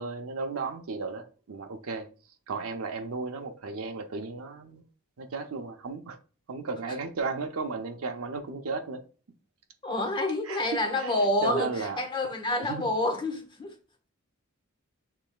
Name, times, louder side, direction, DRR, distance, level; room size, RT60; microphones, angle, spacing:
voice 1, 0.0-2.1 2.5-4.8 5.2-6.2 6.5-9.0 10.4-10.6 10.9-11.1 11.4-12.0 12.7-12.9, right 4 dB, 80° right, 0.6 m, -34 dB
voice 2, 9.8-13.7, left 1 dB, 25° left, 1.1 m, -28 dB
6.7 x 3.3 x 2.3 m
head